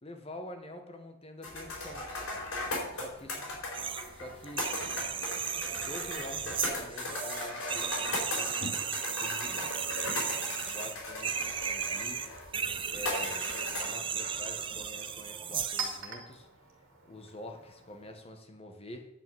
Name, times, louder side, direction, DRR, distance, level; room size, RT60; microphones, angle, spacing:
voice 1, 0.0-2.0 2.9-3.4 4.1-4.7 5.8-8.8 9.2-9.7 10.6-12.2 12.9-16.5 17.0-19.1, left 1 dB, 30° left, 5 dB, 1.3 m, -46 dB
sound 1, 1.4-14.7, left 2 dB, 85° left, 4.5 m, -38 dB
sound 2, 3.7-4.1 4.4-16.0, right 7 dB, 25° right, 0.5 m, -35 dB
Chink clink, 12.8-18.4, right 5 dB, 65° right, 2.1 m, -45 dB
10.0 x 5.3 x 7.7 m, 0.87 s
head